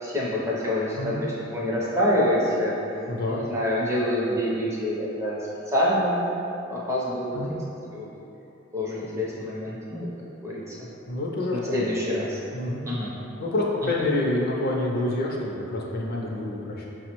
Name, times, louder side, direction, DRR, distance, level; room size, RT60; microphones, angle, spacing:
voice 1, 0.0-2.7 3.3-5.4 5.7-6.2 6.7-7.4 7.9-8.1 8.7-10.1 10.4-10.8 11.5-12.4 12.9-13.1, left 1 dB, 15° right, -6 dB, 0.5 m, -26 dB
voice 2, 3.1-3.4 7.3-7.6 11.1-11.8 12.5-12.9 13.4-16.9, left 2 dB, 50° left, -2 dB, 0.4 m, -27 dB
5.5 x 2.0 x 2.9 m, 2.9 s
head